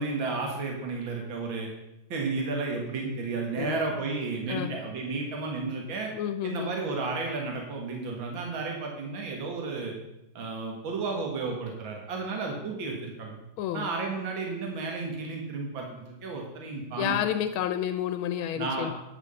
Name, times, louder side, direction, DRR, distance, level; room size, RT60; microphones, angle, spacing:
voice 1, 0.0-1.7 2.1-6.1 6.4-10.0 10.4-13.4 13.7-17.2 18.6-18.9, right 3 dB, 70° right, 0 dB, 2.4 m, -32 dB
voice 2, 3.6-3.9 4.5-4.8 6.1-6.7 13.6-13.9 17.0-18.9, left 10 dB, 90° left, 8 dB, 1.5 m, -30 dB
9.7 x 6.2 x 6.8 m, 0.91 s
omnidirectional pair, 2.2 m